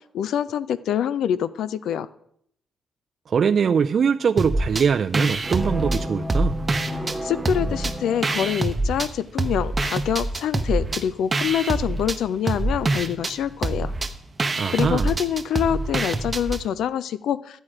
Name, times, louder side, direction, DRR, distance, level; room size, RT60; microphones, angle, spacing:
voice 1, 0.1-2.1 7.2-13.9 14.7-17.6, left 9 dB, 80° left, 17 dB, 0.5 m, -25 dB
voice 2, 3.3-6.6 14.6-15.1, right 6 dB, 45° right, 8 dB, 0.4 m, -22 dB
sound 1, 4.4-4.9 5.1-7.2 7.5-9.1 9.4-16.6, right 2 dB, 20° right, 0.7 m, -25 dB
sound 2, 5.4-8.6, left 1 dB, ahead, 1.5 m, -32 dB
12.0 x 9.0 x 4.8 m, 0.69 s
cardioid pair, 140°, 0 cm